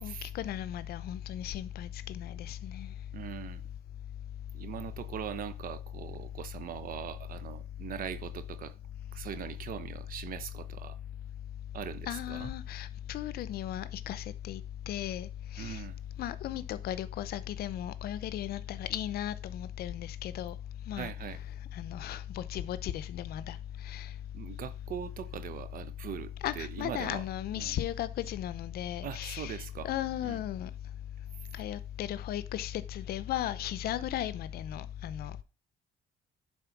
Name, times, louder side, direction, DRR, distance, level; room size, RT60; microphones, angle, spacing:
voice 1, 0.0-2.9 12.1-14.6 14.9-15.3 15.5-15.8 16.2-20.5 20.9-21.1 21.7-23.6 23.8-24.1 26.4-30.7 31.5-35.4, left 11 dB, 65° left, 0.7 m, -36 dB
voice 2, 3.1-3.6 4.5-8.7 9.1-11.0 11.7-12.5 15.6-16.0 20.9-21.4 24.3-27.2 27.6-27.8 29.0-29.9 30.2-30.4, right 9 dB, 55° right, 1.0 m, -41 dB
11.0 x 4.2 x 6.0 m
cardioid pair, 110°, 17 cm